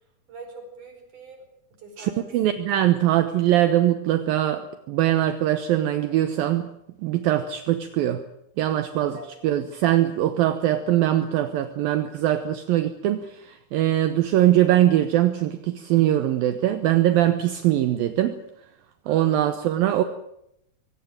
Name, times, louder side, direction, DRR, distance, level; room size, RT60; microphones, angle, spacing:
voice 1, 0.3-1.4 1.8-2.3 9.1-9.3 19.0-19.5, right 3 dB, 50° right, 5 dB, 6.4 m, -43 dB
voice 2, 2.0-6.7 7.0-8.2 8.6-9.2 9.4-18.4 19.1-20.0, right 13 dB, 70° right, 10 dB, 2.6 m, -22 dB
23.0 x 17.5 x 8.9 m, 0.79 s
omnidirectional pair, 4.6 m